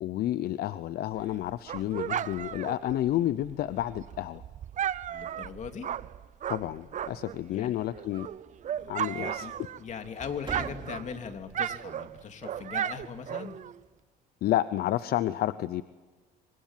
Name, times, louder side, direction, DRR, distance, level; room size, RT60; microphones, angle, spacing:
voice 1, 0.0-4.4 6.5-8.3 8.9-9.5 14.4-15.8, left 13 dB, 65° left, 15 dB, 0.7 m, -30 dB
Dog, 1.1-7.4 7.8-10.1 10.3-13.8, right 10 dB, 45° right, 0.7 m, -35 dB
sound 1, 3.1-14.0, right 4 dB, 30° right, 3.9 m, -50 dB
voice 2, 5.1-5.9 7.5-7.7 8.8-9.5 9.8-13.6, left 6 dB, 45° left, 6 dB, 3.0 m, -40 dB
28.0 x 24.5 x 7.5 m, 1.3 s
cardioid pair, 110°, 17 cm